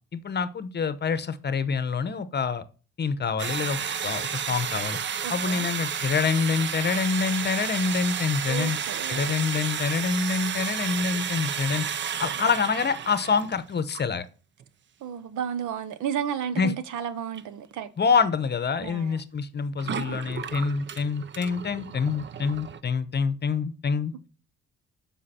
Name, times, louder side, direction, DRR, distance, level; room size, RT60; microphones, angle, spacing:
voice 1, 0.1-2.6 3.0-5.0 5.3-8.8 9.1-11.8 12.2-14.3 16.6-16.7 18.0-24.3, left 5 dB, 35° left, 0.8 m, -26 dB
sound 1, 3.4-13.5 13.9-14.2 14.6-14.7 17.3-17.4 19.7-22.8, right 8 dB, 40° right, 0.5 m, -32 dB
voice 2, 5.2-5.7 8.5-9.4 15.0-17.9 18.8-19.2, right 8 dB, 80° right, 0.9 m, -32 dB
7.5 x 5.3 x 4.2 m
cardioid pair, 90°, 30 cm